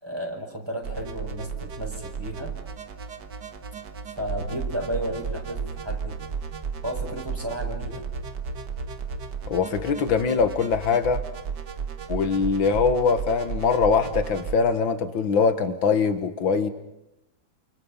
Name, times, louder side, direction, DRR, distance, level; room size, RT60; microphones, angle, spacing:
voice 1, 0.0-2.5 4.2-6.2 6.8-8.1, equal, 10° right, 2 dB, 5.0 m, -33 dB
sound 1, 0.8-14.5, right 6 dB, 60° right, 2.1 m, -34 dB
voice 2, 9.5-11.2 12.1-16.7, left 5 dB, 80° left, 10 dB, 2.3 m, -22 dB
29.0 x 28.5 x 5.7 m, 0.87 s
omnidirectional pair, 2.1 m